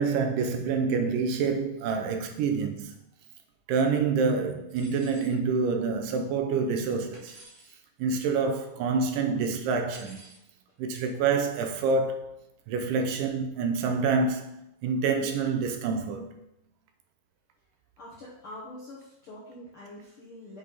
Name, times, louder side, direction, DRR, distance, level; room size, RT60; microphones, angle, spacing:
voice 1, 0.0-2.9 3.7-7.3 8.0-10.2 10.8-12.3 12.7-16.3, right 4 dB, 80° right, 2.2 m, -27 dB
sound 1, 4.7-5.4 7.1-7.7 9.9-10.4, right 2 dB, 55° right, 2.3 m, -51 dB
voice 2, 18.0-20.6, left 1 dB, 70° left, 1.3 m, -45 dB
7.8 x 4.0 x 3.9 m
omnidirectional pair, 4.0 m